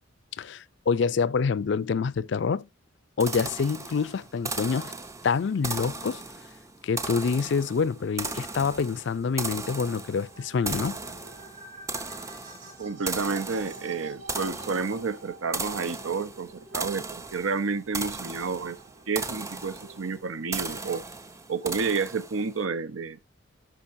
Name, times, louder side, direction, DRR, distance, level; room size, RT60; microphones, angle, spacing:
voice 1, 0.4-2.7 3.2-4.9 5.2-6.2 6.8-11.0, left 5 dB, 60° left, 0.4 m, -26 dB
sound 1, 3.2-22.6, right 3 dB, 15° right, 0.5 m, -37 dB
sound 2, 9.1-20.4, right 3 dB, 40° right, 3.6 m, -49 dB
voice 2, 12.8-18.8 19.1-21.0 21.5-23.2, right 5 dB, 85° right, 0.7 m, -30 dB
10.0 x 6.3 x 2.6 m
head